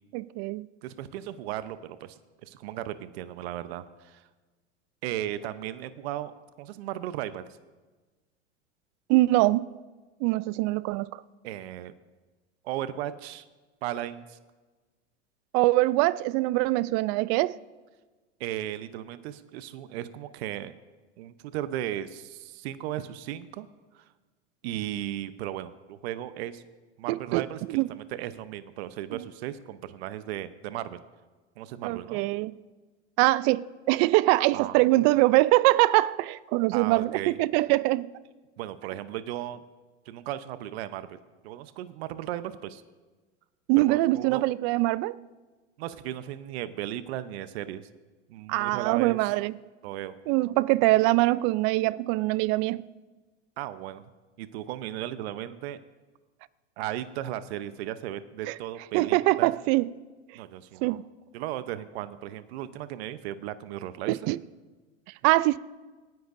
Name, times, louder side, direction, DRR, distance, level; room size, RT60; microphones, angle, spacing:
voice 1, 0.1-0.7 9.1-9.6 10.2-11.1 15.5-17.6 27.1-27.9 29.1-29.2 31.8-32.5 33.2-38.1 43.7-45.2 48.5-49.5 50.3-52.8 58.5-58.6 58.9-59.9 60.8-61.0 64.1-64.4 65.2-65.6, right 19 dB, 40° right, 0.5 m, -23 dB
voice 2, 0.8-4.2 5.0-7.4 11.4-11.9 12.6-13.4 13.8-14.4 18.4-20.7 21.2-23.7 23.9-24.1 24.6-26.6 27.0-31.0 31.6-32.2 34.5-34.7 36.7-37.4 38.6-39.6 40.1-41.2 41.4-42.8 43.8-44.4 45.8-47.9 48.3-49.3 49.8-50.2 53.6-54.0 54.4-55.8 56.8-59.5 60.3-61.0 61.3-64.2, right 12 dB, 60° right, 0.9 m, -36 dB
27.0 x 10.5 x 2.6 m
hypercardioid pair, 110°, 35 cm